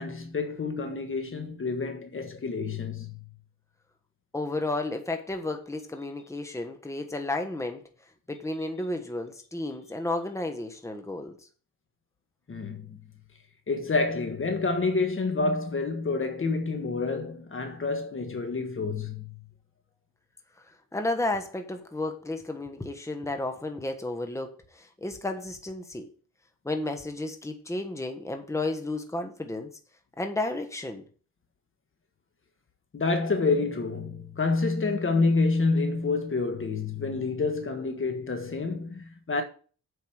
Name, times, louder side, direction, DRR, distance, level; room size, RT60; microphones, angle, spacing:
voice 1, 0.0-3.2 12.5-13.0 13.7-19.3 32.9-39.4, left 3 dB, 35° left, 1.5 m, -28 dB
voice 2, 4.3-7.8 8.3-11.4 20.9-26.1 26.6-29.7 30.2-31.0, left 2 dB, 10° left, 1.4 m, -32 dB
8.0 x 5.3 x 6.5 m
cardioid pair, 90°, 35 cm